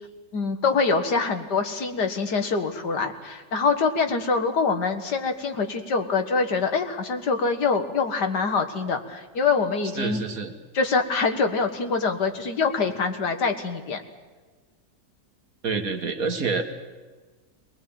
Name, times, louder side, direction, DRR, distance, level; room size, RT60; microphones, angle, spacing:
voice 1, 0.3-10.2 10.7-14.0, left 4 dB, 70° left, 6 dB, 2.2 m, -24 dB
voice 2, 9.9-10.5 15.6-16.7, right 4 dB, 55° right, 5 dB, 2.0 m, -27 dB
22.0 x 19.5 x 8.8 m, 1.3 s
omnidirectional pair, 1.9 m